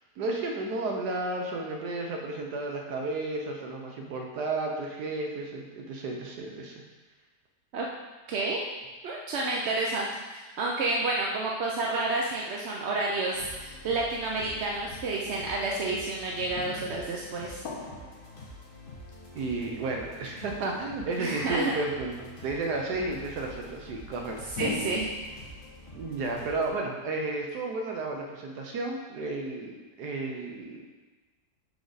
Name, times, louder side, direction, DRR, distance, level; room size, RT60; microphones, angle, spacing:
voice 1, 0.0-6.8 19.3-24.4 25.9-30.8, right 2 dB, 75° right, 1 dB, 1.3 m, -33 dB
voice 2, 8.3-8.6 9.0-17.6 21.2-21.7 24.5-25.1, right 2 dB, 60° right, -2 dB, 0.7 m, -30 dB
sound 1, 10.8-11.6 12.4-12.5 16.6-19.4 24.5-28.0, left 3 dB, 65° left, 1.3 m, -42 dB
sound 2, 13.3-26.7, left 1 dB, 35° left, 1.3 m, -47 dB
6.2 x 5.1 x 3.9 m, 1.3 s
omnidirectional pair, 1.8 m